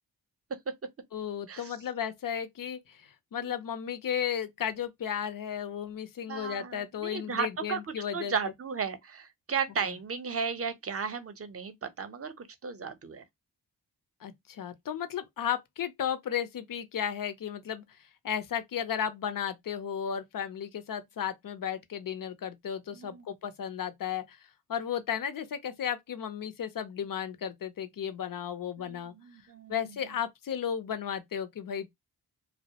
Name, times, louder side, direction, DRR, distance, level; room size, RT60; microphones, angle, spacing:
voice 1, 1.1-8.3 9.9-10.0 14.2-17.8 18.2-24.4 24.7-29.1 29.7-31.9, left 8 dB, 55° left, 0.6 m, -34 dB
voice 2, 6.3-7.8 8.1-13.2 22.9-23.2 28.8-29.9, right 6 dB, 35° right, 0.7 m, -35 dB
2.2 x 2.1 x 2.8 m
cardioid pair, 50°, 40 cm